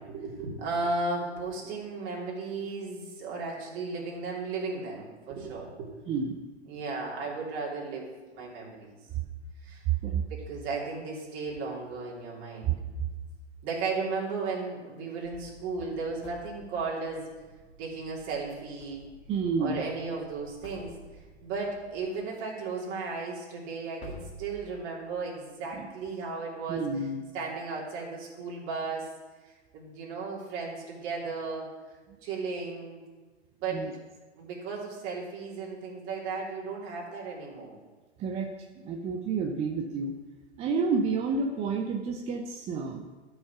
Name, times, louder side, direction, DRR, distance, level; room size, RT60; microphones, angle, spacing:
voice 1, 0.0-5.9 6.7-9.0 9.6-9.8 10.3-12.7 13.6-17.2 17.8-19.1 19.6-26.9 27.3-29.1 29.4-31.7 32.2-33.0 33.6-33.8 34.3-37.7, right 4 dB, 35° right, -4 dB, 3.1 m, -35 dB
voice 2, 6.1-6.4 10.0-10.2 12.7-12.8 19.3-19.8 25.7-25.9 26.7-27.2 33.7-33.9 38.2-40.1 40.6-43.1, right 5 dB, 20° right, 3 dB, 0.5 m, -30 dB
sound 1, 15.2-16.8 18.8-19.5 19.8-19.9 20.6-21.4 23.3-23.4 24.0-25.2, right 1 dB, 30° left, 2.3 m, -49 dB
sound 2, 15.2-22.1, left 2 dB, 5° left, 1.5 m, -58 dB
12.5 x 5.6 x 5.9 m, 1.3 s
figure-of-eight pair, 110°, 34 cm